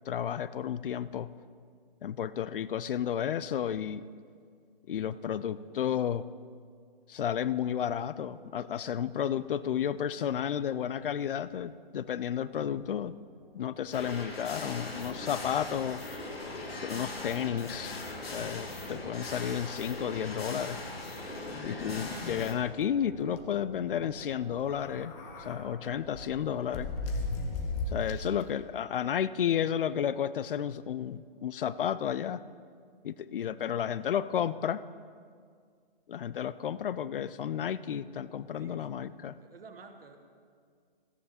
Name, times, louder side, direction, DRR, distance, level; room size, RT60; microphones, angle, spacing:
voice 1, 0.1-1.3 2.0-4.0 4.9-6.3 7.1-13.1 13.5-16.0 16.8-20.8 21.6-25.1 25.4-26.9 27.9-32.4 33.0-34.8 36.1-39.3, left 9 dB, 65° left, 16 dB, 0.5 m, -32 dB
sound 1, 13.0-28.9, right 2 dB, 20° right, 1.8 m, -52 dB
sound 2, 13.9-22.5, left 2 dB, 90° left, 1.7 m, -40 dB
sound 3, 21.5-22.5 22.8-22.9 23.2-23.4 24.6-25.6 26.1-28.4, left 3 dB, 10° left, 0.5 m, -36 dB
voice 2, 38.6-39.0 39.4-40.2, right 4 dB, 75° right, 6 dB, 1.4 m, -51 dB
14.0 x 9.5 x 4.3 m, 2.1 s
hypercardioid pair, 145°, 29 cm